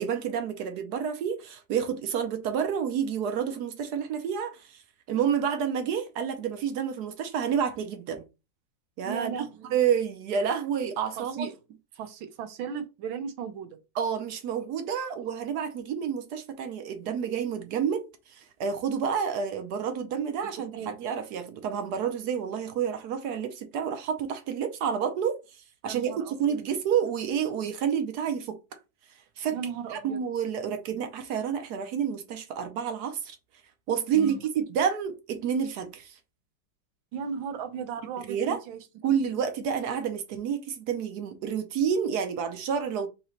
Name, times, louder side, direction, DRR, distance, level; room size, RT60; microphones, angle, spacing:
voice 1, 0.0-4.8 5.1-8.3 9.0-11.5 14.0-28.6 29.4-29.6 29.9-33.4 33.9-36.2 38.3-38.6 39.0-43.1, right 7 dB, 65° right, 1.1 m, -29 dB
voice 2, 9.0-9.7 11.2-11.5 11.9-13.8 20.7-20.9 25.8-26.6 29.5-30.2 34.1-34.4 37.1-38.8 39.2-39.4, right 7 dB, 90° right, 1.6 m, -36 dB
4.0 x 2.9 x 4.4 m
omnidirectional pair, 2.1 m